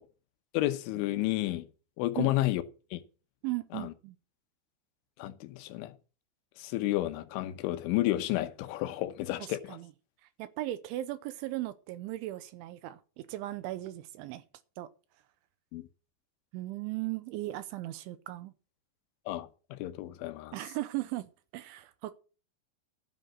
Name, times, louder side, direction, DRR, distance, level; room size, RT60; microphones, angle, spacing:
voice 1, 0.5-1.7 2.0-2.6 2.9-3.0 3.7-3.9 5.2-5.9 6.6-9.8 15.7-15.9 19.3-20.6, left 16 dB, 80° left, 3.4 m, -31 dB
voice 2, 3.4-4.2 9.4-9.9 10.4-14.4 14.8-14.9 16.5-18.5 20.5-21.3 21.5-22.1, right 16 dB, 80° right, 3.1 m, -37 dB
13.5 x 7.9 x 6.2 m
omnidirectional pair, 5.6 m